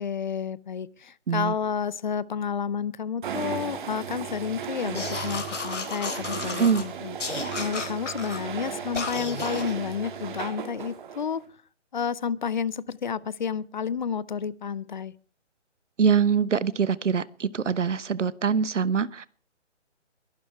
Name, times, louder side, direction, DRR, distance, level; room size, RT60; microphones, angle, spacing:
voice 1, 0.0-7.2 7.6-11.4 11.9-15.1, left 7 dB, 40° left, 22 dB, 0.6 m, -30 dB
sound 1, 3.2-11.4, right 7 dB, 40° right, 2.6 m, -36 dB
sound 2, 4.9-6.8 7.2-8.4 8.9-9.7, left 4 dB, 75° left, 4.1 m, -33 dB
voice 2, 16.0-19.3, right 6 dB, 80° right, 19 dB, 1.2 m, -24 dB
22.5 x 12.0 x 4.6 m, 0.40 s
hypercardioid pair, 155°, 36 cm